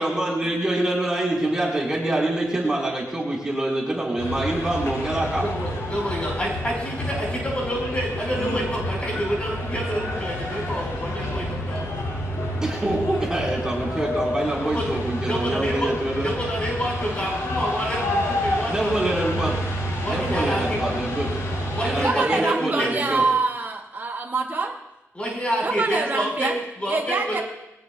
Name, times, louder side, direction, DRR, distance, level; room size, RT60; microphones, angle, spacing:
voice 1, 0.0-5.4 12.6-16.3 18.7-19.6 20.0-21.3 21.8-23.2, right 1 dB, 15° right, -5 dB, 4.8 m, -25 dB
sound 1, 4.2-22.0, left 1 dB, 85° left, 5.9 m, -29 dB
voice 2, 5.4-11.9 14.6-14.9 15.3-15.9 16.2-19.2 20.0-20.8 21.7-22.9 25.1-27.4, equal, 20° left, -2 dB, 5.2 m, -28 dB
voice 3, 22.0-24.7 25.6-26.5 26.9-27.4, right 3 dB, 35° right, -1 dB, 2.3 m, -25 dB
22.5 x 18.5 x 2.4 m, 0.93 s
wide cardioid pair, 135°, 6 cm